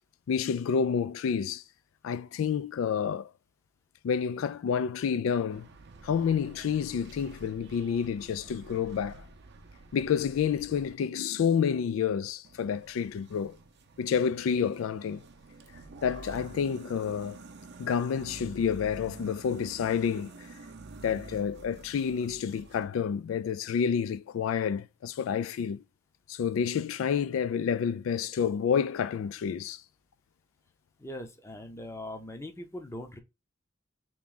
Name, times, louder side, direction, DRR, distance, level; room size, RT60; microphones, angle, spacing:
voice 1, 0.3-1.6 2.0-3.3 4.0-5.7 6.0-9.3 9.9-13.6 14.0-15.2 16.0-17.4 17.8-20.5 21.0-25.8 26.3-29.8, left 7 dB, 85° left, 0.3 m, -29 dB
sound 1, 5.5-10.9 12.4-22.9, right 3 dB, 60° right, 0.6 m, -49 dB
voice 2, 31.0-33.2, left 1 dB, 15° left, 0.6 m, -41 dB
3.4 x 3.0 x 3.8 m
head